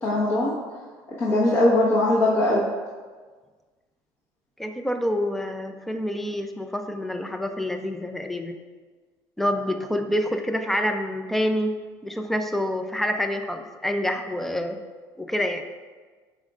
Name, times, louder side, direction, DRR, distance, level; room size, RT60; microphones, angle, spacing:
voice 1, 0.0-0.5 1.2-2.6, left 1 dB, 30° left, -7 dB, 1.3 m, -20 dB
voice 2, 4.6-8.6 9.4-11.7 12.0-14.8 15.2-15.6, equal, 5° left, 6 dB, 0.4 m, -27 dB
13.5 x 5.2 x 2.5 m, 1.4 s
cardioid pair, 160°, 9 cm